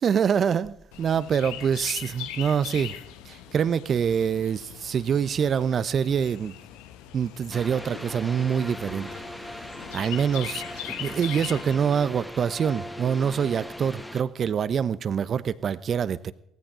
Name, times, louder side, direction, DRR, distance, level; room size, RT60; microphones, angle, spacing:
voice 1, 0.0-3.0 3.2-6.5 7.1-9.1 9.9-16.3, right 7 dB, 50° right, 0.9 m, -25 dB
Chirp tweet, 0.9-11.7, left 12 dB, 75° left, 1.2 m, -41 dB
sound 1, 7.5-14.2, equal, 5° left, 1.8 m, -39 dB
18.0 x 15.0 x 5.0 m
hypercardioid pair, 60°, 0 cm